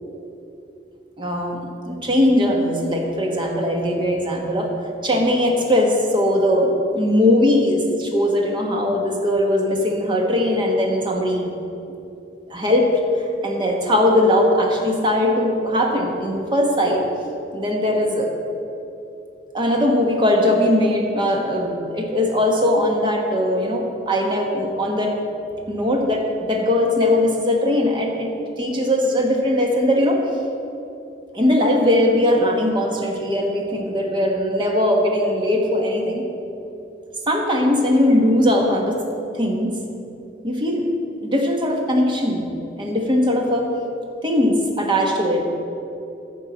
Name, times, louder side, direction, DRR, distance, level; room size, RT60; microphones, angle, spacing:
voice 1, 1.2-4.7 5.0-11.5 12.5-12.9 13.2-17.0 17.5-18.3 19.5-25.1 25.7-30.2 31.3-36.3 37.3-39.0 39.3-39.8 40.4-40.8 41.2-42.5 42.8-43.7 44.2-45.4, left 1 dB, 25° right, 1 dB, 1.3 m, -20 dB
13.5 x 4.6 x 7.1 m, 2.8 s
head